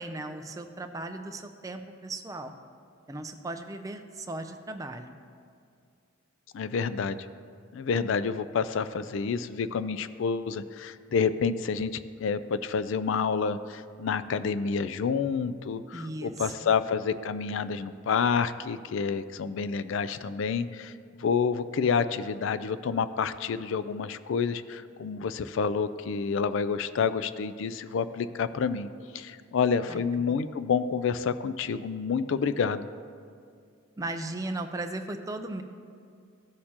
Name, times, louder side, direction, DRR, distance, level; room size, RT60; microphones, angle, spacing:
voice 1, 0.0-2.5 3.1-5.2 15.9-16.7 29.9-30.4 34.0-35.6, right 2 dB, 15° right, 6 dB, 0.4 m, -37 dB
voice 2, 6.5-7.2 7.7-20.9 21.2-28.9 29.1-32.9, left 6 dB, 60° left, 13 dB, 0.3 m, -29 dB
14.0 x 6.5 x 2.9 m, 2.3 s
head